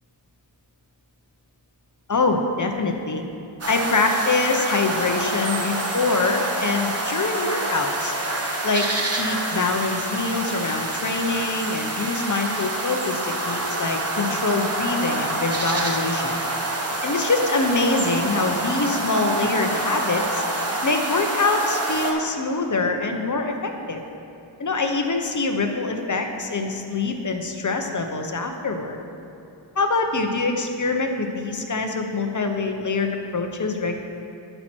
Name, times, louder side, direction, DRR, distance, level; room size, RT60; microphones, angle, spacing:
voice 1, 2.1-3.2 3.7-8.1 8.6-8.9 9.2-16.4 17.0-20.4 20.8-24.0 24.6-29.0 29.8-34.0, left 3 dB, 40° left, 4 dB, 0.8 m, -24 dB
sound 1, 3.6-22.1, right 2 dB, 30° right, 1.1 m, -27 dB
13.0 x 4.5 x 4.4 m, 2.8 s
wide cardioid pair, 80°, 46 cm